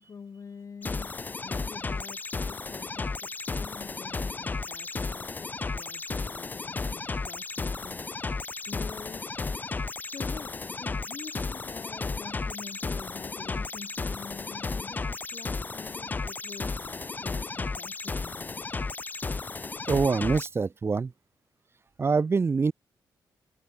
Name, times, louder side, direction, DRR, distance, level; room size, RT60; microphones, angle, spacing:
voice 1, 0.0-9.3 10.1-18.6, left 6 dB, 40° left, 7.7 m, -47 dB
sound 1, 0.8-20.5, left 4 dB, 20° left, 0.7 m, -34 dB
voice 2, 19.9-21.1 22.0-22.7, right 4 dB, 30° right, 1.6 m, -25 dB
wide cardioid pair, 145°, 8 cm